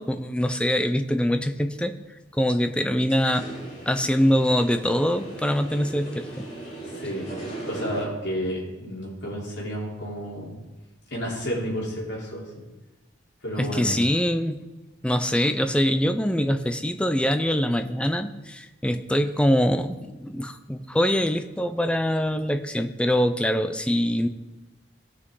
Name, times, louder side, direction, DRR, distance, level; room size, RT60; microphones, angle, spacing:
voice 1, 0.0-1.9 2.3-3.5 3.9-6.5 13.6-14.7 15.0-24.3, equal, 5° left, 8 dB, 0.5 m, -24 dB
sound 1, 3.0-8.0, right 2 dB, 35° left, 3.5 m, -38 dB
voice 2, 6.9-7.3 7.6-10.5 11.1-12.6 13.4-13.9, equal, 65° left, -4 dB, 3.5 m, -31 dB
17.0 x 6.1 x 3.8 m, 1.1 s
head